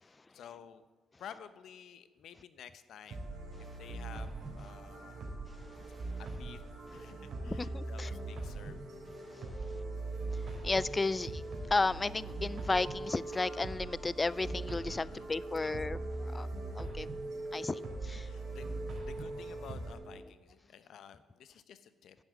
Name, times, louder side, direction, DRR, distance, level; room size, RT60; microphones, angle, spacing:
voice 1, 0.0-0.8 1.2-3.3 3.6-5.2 6.2-6.6 6.9-8.8 9.6-10.0 15.0-15.3 15.6-15.8 18.2-18.6 19.0-22.2, left 8 dB, 70° left, 0.8 m, -52 dB
sound 1, 3.1-19.9, right 2 dB, 60° right, 3.3 m, -42 dB
sound 2, 5.2-20.3, right 1 dB, 10° right, 1.1 m, -46 dB
voice 2, 7.5-8.1 10.3-11.4 11.7-16.0 16.3-16.5 16.8-17.1 17.5-18.3, left 3 dB, 20° left, 0.3 m, -33 dB
10.5 x 7.1 x 8.3 m
cardioid pair, 90°, 0 cm